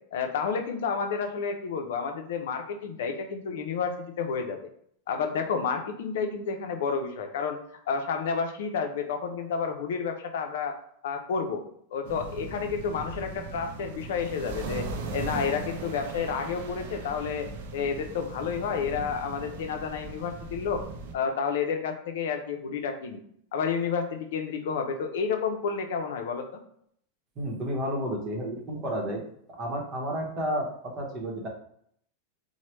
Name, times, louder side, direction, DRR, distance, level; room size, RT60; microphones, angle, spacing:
voice 1, 0.1-4.6 5.1-7.6 7.9-10.8 11.0-11.6 11.9-20.8 21.1-23.2 23.5-26.6, left 6 dB, 75° left, 6 dB, 0.5 m, -30 dB
sound 1, 12.0-21.1, right 4 dB, 70° right, 0.5 m, -38 dB
voice 2, 27.4-29.2 29.6-31.5, equal, 35° right, 0 dB, 0.8 m, -31 dB
3.0 x 2.1 x 3.1 m, 0.67 s
supercardioid pair, 135°, 0 cm